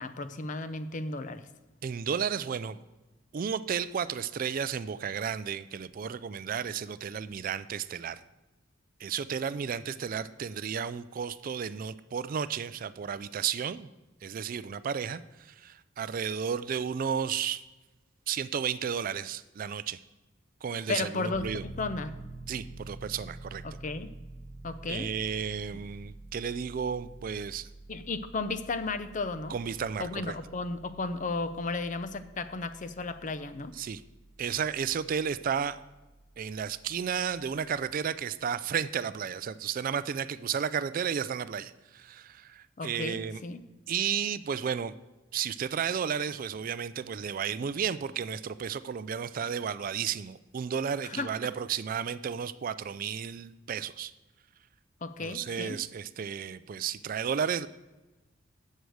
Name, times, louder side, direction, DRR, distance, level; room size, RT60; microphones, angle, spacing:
voice 1, 0.0-1.5 20.9-22.2 23.6-24.1 24.6-25.1 27.9-29.6 30.0-33.7 42.8-43.6 51.0-51.3 55.0-55.8, left 3 dB, 40° left, 11 dB, 0.6 m, -34 dB
voice 2, 1.8-2.8 3.3-8.2 9.0-13.9 14.2-17.6 18.3-20.0 20.6-21.6 22.5-23.6 24.9-27.7 29.5-30.3 33.8-34.0 34.4-35.8 36.4-43.4 43.9-44.9 45.3-54.1 55.2-57.7, right 7 dB, 45° right, 15 dB, 0.3 m, -33 dB
Piano, 21.3-38.0, right 2 dB, 15° left, 1.9 m, -48 dB
8.0 x 6.6 x 7.8 m, 1.1 s
head